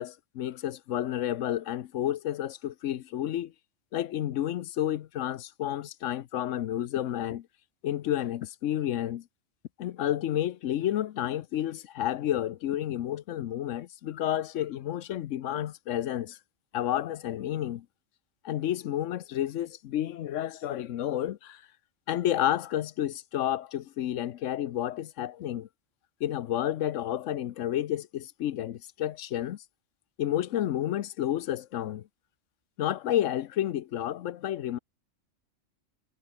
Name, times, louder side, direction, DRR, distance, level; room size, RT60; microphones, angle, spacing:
voice 1, 0.0-3.5 3.9-7.5 7.8-9.2 9.8-16.4 16.7-17.9 18.4-21.6 22.1-25.7 26.2-29.6 30.2-32.1 32.8-34.8, left 12 dB, 90° left, 1.0 m, -30 dB
omnidirectional pair, 1.3 m